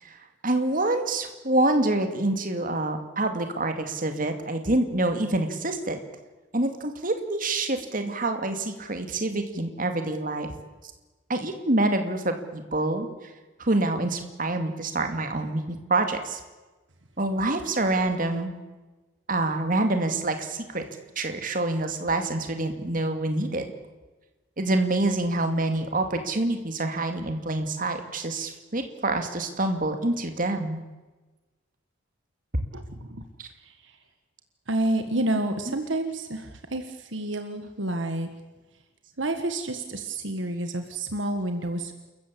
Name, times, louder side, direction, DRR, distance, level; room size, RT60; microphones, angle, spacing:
voice 1, 0.0-6.0 6.5-10.5 11.3-13.3 13.6-16.4 17.2-18.5 19.3-20.8 21.2-23.6 24.6-30.8 33.4-33.5 35.7-35.8, right 2 dB, 40° right, 6 dB, 2.4 m, -26 dB
voice 2, 32.7-33.3 33.6-34.0 34.7-38.3 39.2-41.9, right 1 dB, 65° right, 7 dB, 1.6 m, -29 dB
29.0 x 14.5 x 8.5 m, 1.2 s
head